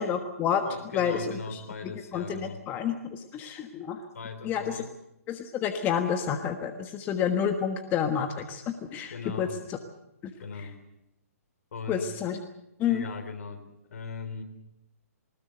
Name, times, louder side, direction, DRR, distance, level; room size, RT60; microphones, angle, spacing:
voice 1, 0.0-0.6 0.9-1.3 1.5-1.6 2.1-4.0 4.4-4.8 5.3-9.5 10.2-10.3 11.9-12.4 12.8-13.0, left 8 dB, 20° left, 7 dB, 1.3 m, -29 dB
voice 2, 0.6-2.7 4.1-4.9 9.1-9.6 10.4-10.8 11.7-12.1 12.9-14.4, left 4 dB, 65° left, 7 dB, 3.8 m, -39 dB
20.0 x 20.0 x 7.9 m, 0.86 s
hypercardioid pair, 135°, 9 cm